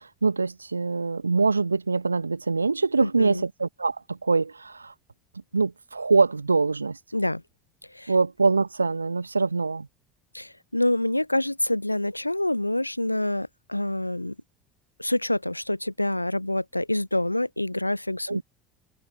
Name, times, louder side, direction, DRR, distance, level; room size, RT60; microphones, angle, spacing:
voice 1, 0.0-4.9 5.5-7.0 8.1-9.9 18.3-18.4, right 4 dB, 80° right, 1.4 m, -24 dB
voice 2, 3.0-3.4 7.1-7.4 7.9-8.1 10.3-14.3 15.0-18.4, left 1 dB, 85° left, 0.5 m, -27 dB
figure-of-eight pair, 70°, 0 cm